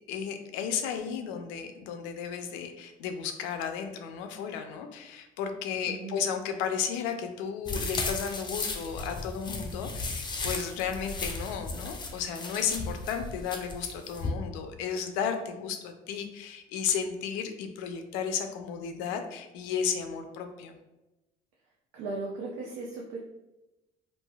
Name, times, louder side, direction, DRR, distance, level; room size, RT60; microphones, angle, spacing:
voice 1, 0.1-20.7, left 7 dB, 90° left, 6 dB, 0.4 m, -33 dB
voice 2, 5.9-6.2 21.9-23.2, right 3 dB, 90° right, -1 dB, 0.5 m, -37 dB
sound 1, 7.6-14.3, left 3 dB, 25° left, 0.5 m, -35 dB
3.1 x 2.6 x 2.2 m, 1.0 s
supercardioid pair, 80°, 19 cm